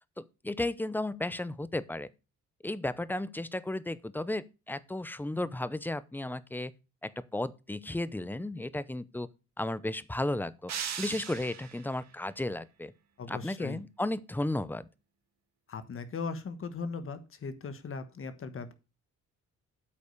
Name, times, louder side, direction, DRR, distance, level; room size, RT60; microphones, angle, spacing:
voice 1, 0.2-2.1 2.6-6.7 7.0-9.3 9.6-10.7 11.0-12.9 13.3-14.9, left 1 dB, 5° left, 0.6 m, -34 dB
sound 1, 10.7-11.9, right 8 dB, 60° right, 1.6 m, -38 dB
voice 2, 13.2-13.8 15.7-18.7, left 4 dB, 45° left, 1.3 m, -38 dB
8.4 x 5.4 x 6.4 m
cardioid pair, 90°, 30 cm